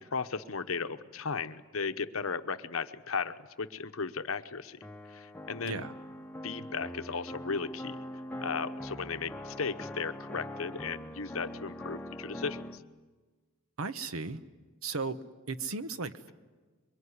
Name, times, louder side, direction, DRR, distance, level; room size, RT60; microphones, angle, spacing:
voice 1, 0.1-4.8 5.1-5.8 6.4-8.0 8.4-12.8, left 5 dB, 75° left, 10 dB, 1.0 m, -36 dB
sound 1, 4.8-12.8, left 1 dB, 5° left, 0.8 m, -42 dB
voice 2, 13.8-14.4 14.8-15.2 15.5-16.3, right 4 dB, 85° right, 11 dB, 1.1 m, -35 dB
26.0 x 23.0 x 9.8 m, 1.4 s
head